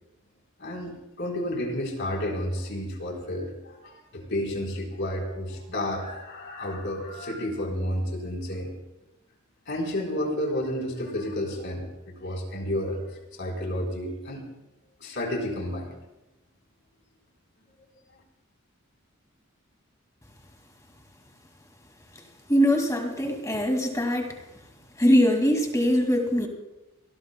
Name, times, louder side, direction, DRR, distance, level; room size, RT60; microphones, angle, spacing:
voice 1, 0.6-8.7 9.7-13.0 13.4-14.4 15.0-15.9, left 1 dB, 60° left, 0 dB, 3.8 m, -31 dB
voice 2, 22.5-24.3 25.0-26.5, equal, 15° left, 4 dB, 2.2 m, -22 dB
27.0 x 18.5 x 2.2 m, 0.97 s
head